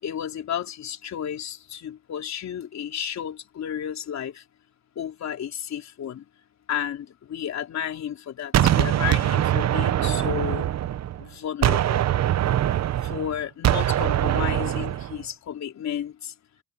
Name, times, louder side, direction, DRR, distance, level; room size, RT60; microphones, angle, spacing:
voice 1, 0.0-4.4 5.0-6.2 6.7-10.7 11.2-12.0 13.0-16.3, left 9 dB, 65° left, 3.7 m, -32 dB
Gunshot gunfire, 8.5-11.2 11.6-15.2, right 12 dB, 60° right, 1.0 m, -23 dB
cardioid pair, 90°, 30 cm